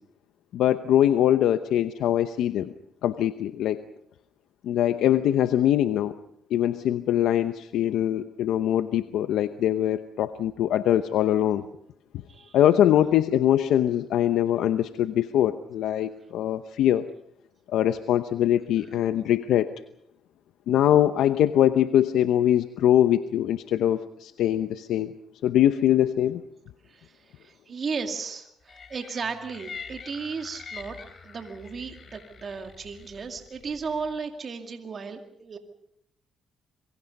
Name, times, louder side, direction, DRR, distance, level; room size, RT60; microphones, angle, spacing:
voice 1, 0.5-2.7 3.0-3.8 4.6-6.1 6.5-11.6 12.5-17.0 17.7-19.7 20.7-25.1 25.4-26.4, left 11 dB, 80° left, 10 dB, 0.8 m, -22 dB
voice 2, 26.9-31.0 31.2-35.6, right 5 dB, 45° right, 5 dB, 2.3 m, -35 dB
sound 1, 28.7-34.1, left 5 dB, 45° left, 3.3 m, -45 dB
26.5 x 23.0 x 5.4 m, 0.76 s
cardioid pair, 90°, 0 cm